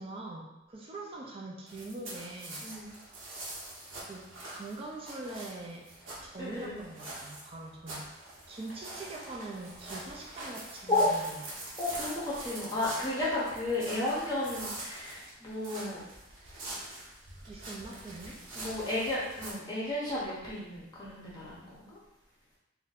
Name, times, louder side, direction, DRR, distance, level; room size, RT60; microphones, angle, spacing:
voice 1, 0.0-2.7 4.0-5.9 6.2-8.1 8.5-11.5 17.5-18.4, right 2 dB, 30° right, -1 dB, 0.4 m, -43 dB
sound 1, 1.7-19.5, right 1 dB, 75° right, 0.9 m, -44 dB
voice 2, 2.6-2.9 6.4-6.8 10.9-11.1 11.8-16.1 18.6-22.0, left 2 dB, 20° left, -8 dB, 0.7 m, -33 dB
2.6 x 2.2 x 3.9 m, 0.90 s
head